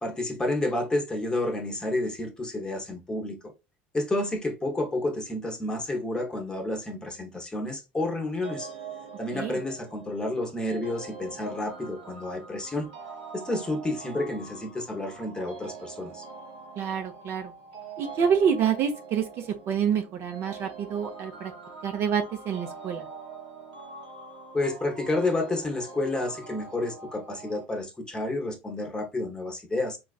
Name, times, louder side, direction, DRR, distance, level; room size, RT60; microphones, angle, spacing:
voice 1, 0.0-3.4 3.9-8.7 9.2-12.9 13.3-16.2 24.5-30.0, left 2 dB, 15° left, 0.9 m, -30 dB
sound 1, 8.4-27.6, right 4 dB, 90° right, 1.1 m, -44 dB
voice 2, 16.8-17.5 18.0-21.5 21.8-23.0, right 7 dB, 50° right, 0.7 m, -27 dB
4.0 x 2.4 x 2.3 m
supercardioid pair, 110°, 5 cm